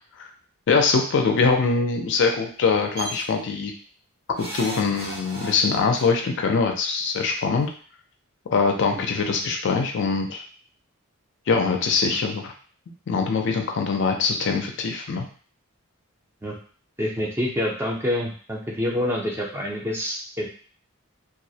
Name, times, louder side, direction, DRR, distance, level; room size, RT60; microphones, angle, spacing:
voice 1, 0.7-3.7 4.4-7.7 8.5-10.4 11.5-12.5 13.1-15.2, left 4 dB, 55° left, 3 dB, 0.4 m, -23 dB
sound 1, 3.0-3.2 4.4-6.0 7.2-7.3 7.6-7.7, right 1 dB, 50° right, 0.6 m, -35 dB
voice 2, 17.0-20.5, left 1 dB, 10° right, -3 dB, 0.4 m, -27 dB
2.3 x 2.0 x 2.7 m, 0.42 s
head